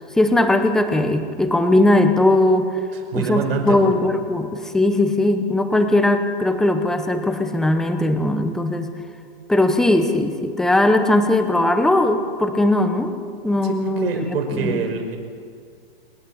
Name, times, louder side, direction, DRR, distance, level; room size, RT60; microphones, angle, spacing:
voice 1, 0.2-2.7 3.1-8.9 9.5-13.2 13.4-14.1 14.5-14.8, left 1 dB, ahead, 7 dB, 0.8 m, -19 dB
voice 2, 2.9-3.9 13.6-15.2, right 5 dB, 70° right, 3 dB, 5.2 m, -26 dB
27.5 x 11.0 x 8.6 m, 2.2 s
hypercardioid pair, 155°, 31 cm